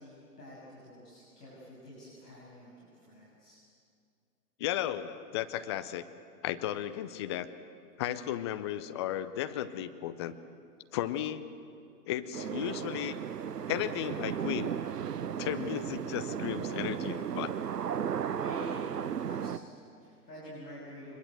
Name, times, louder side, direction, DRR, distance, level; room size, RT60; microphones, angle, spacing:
voice 1, 0.0-3.6 18.3-21.2, equal, 70° left, -6 dB, 6.8 m, -48 dB
voice 2, 4.6-6.0 6.4-7.5 8.0-10.3 10.9-11.5 12.0-13.2 13.7-14.8 15.4-17.5, left 12 dB, 20° left, 11 dB, 0.5 m, -34 dB
sound 1, 12.3-19.6, right 8 dB, 75° right, 0.8 m, -35 dB
24.0 x 21.5 x 7.7 m, 2.3 s
figure-of-eight pair, 110°, 48 cm